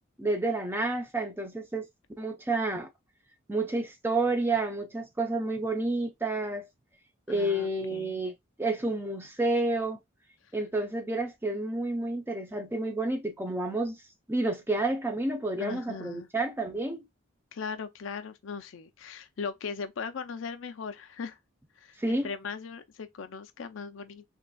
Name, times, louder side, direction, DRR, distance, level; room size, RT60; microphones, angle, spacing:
voice 1, 0.2-1.9 2.2-2.9 3.5-6.7 7.3-8.3 8.6-10.0 10.5-14.0 14.3-17.0 22.0-22.3, right 2 dB, 10° right, 0.4 m, -30 dB
voice 2, 7.3-8.2 15.6-16.3 17.5-21.4 21.8-24.2, left 5 dB, 75° left, 0.5 m, -39 dB
3.7 x 2.4 x 2.2 m
head